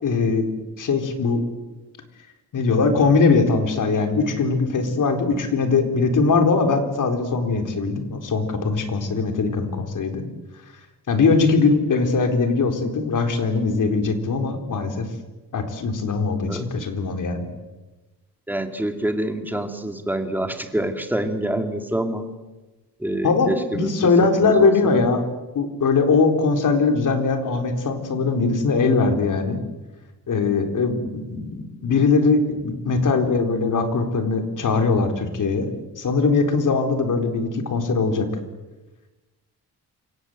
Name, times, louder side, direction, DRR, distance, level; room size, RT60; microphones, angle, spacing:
voice 1, 0.0-0.5 0.8-1.4 2.5-10.2 11.1-15.1 15.5-17.5 23.2-25.2 25.5-29.6 30.3-38.3, left 4 dB, 50° left, 5 dB, 4.1 m, -21 dB
voice 2, 18.5-22.2 23.0-24.7, right 1 dB, 5° right, 6 dB, 2.3 m, -26 dB
29.0 x 25.5 x 8.0 m, 1.1 s
wide cardioid pair, 170°, 39 cm